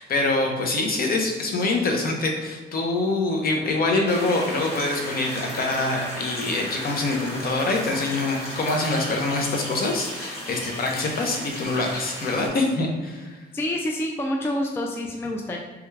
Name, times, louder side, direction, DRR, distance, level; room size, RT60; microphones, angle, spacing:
voice 1, 0.0-13.4, left 2 dB, 50° left, 1 dB, 0.7 m, -25 dB
sound 1, 4.1-12.5, equal, 30° left, 1.2 m, -35 dB
voice 2, 13.5-15.6, left 1 dB, 10° left, 1 dB, 0.3 m, -27 dB
3.4 x 2.2 x 3.2 m, 1.3 s
cardioid pair, 90°, 20 cm